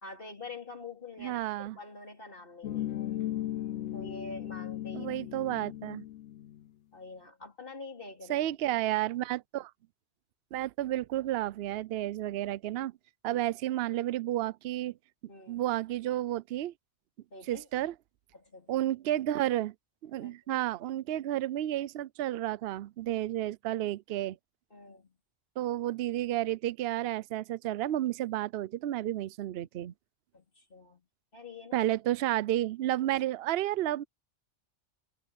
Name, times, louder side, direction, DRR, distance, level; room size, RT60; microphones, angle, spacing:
voice 1, 0.0-1.4 1.7-3.1 3.9-5.2 6.9-8.4 13.3-13.4 15.3-15.6 17.3-17.7 18.3-18.8 20.2-20.4 24.7-25.1 30.3-31.0 31.3-31.8, left 3 dB, 50° left, 4.5 m, -46 dB
voice 2, 1.2-1.8 4.9-6.0 8.3-9.7 10.5-12.9 13.2-15.0 15.5-16.7 17.5-17.9 18.7-19.7 20.0-24.4 25.6-29.9 31.7-34.0, right 13 dB, 65° right, 0.7 m, -31 dB
sound 1, 2.6-6.6, left 12 dB, 75° left, 1.0 m, -37 dB
omnidirectional pair, 1.2 m